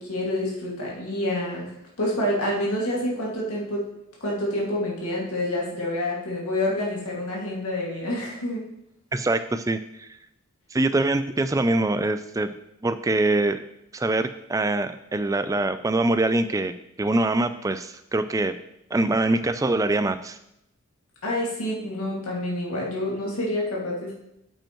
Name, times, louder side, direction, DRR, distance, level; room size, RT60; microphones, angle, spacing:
voice 1, 0.0-1.7 2.0-3.9 4.2-8.7 21.2-24.1, left 1 dB, 85° left, -4 dB, 2.2 m, -28 dB
voice 2, 9.1-10.1 10.7-12.5 12.8-13.6 13.9-16.7 17.0-18.5 18.9-20.4, right 2 dB, 15° right, 11 dB, 0.3 m, -24 dB
8.8 x 7.8 x 3.1 m, 0.80 s
head